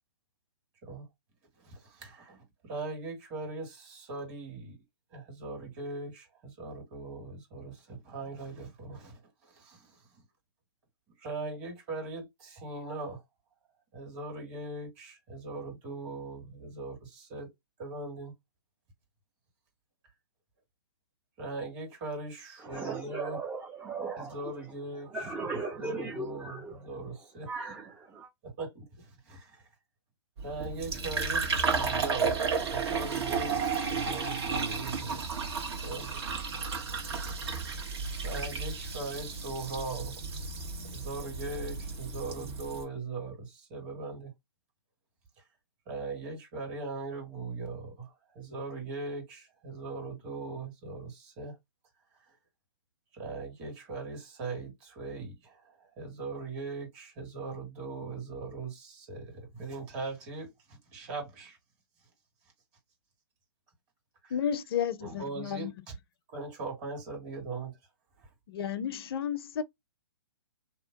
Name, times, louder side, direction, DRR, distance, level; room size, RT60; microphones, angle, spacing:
voice 1, 1.6-2.4 2.6-4.8 5.1-10.0 11.2-13.2 13.9-17.5 17.8-18.3 21.4-23.4 24.2-25.3 25.8-27.5 28.4-29.6 30.4-36.2 37.4-37.5 38.2-40.1 40.9-44.3 45.9-51.6 53.1-61.6 64.2-64.3 65.0-65.7 66.3-67.8, right 3 dB, 35° right, 1.8 m, -40 dB
voice 2, 22.6-24.5 25.0-26.8 27.5-28.3, right 3 dB, 10° right, 0.5 m, -37 dB
Fill (with liquid), 30.4-42.8, right 5 dB, 60° right, 1.4 m, -33 dB
voice 3, 64.3-65.7 68.5-69.6, left 8 dB, 60° left, 0.6 m, -32 dB
2.9 x 2.0 x 3.9 m
hypercardioid pair, 130°, 15 cm